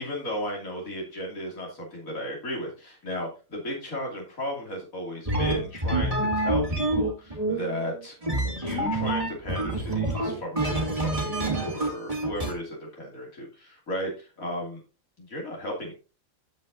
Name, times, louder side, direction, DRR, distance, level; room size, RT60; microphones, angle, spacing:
voice 1, 0.0-8.1 8.4-14.8 15.2-15.9, left 1 dB, 75° left, -2 dB, 3.2 m, -35 dB
sound 1, 5.3-12.5, right 2 dB, 25° right, 3.0 m, -27 dB
15.5 x 5.4 x 2.6 m, 0.31 s
omnidirectional pair, 1.5 m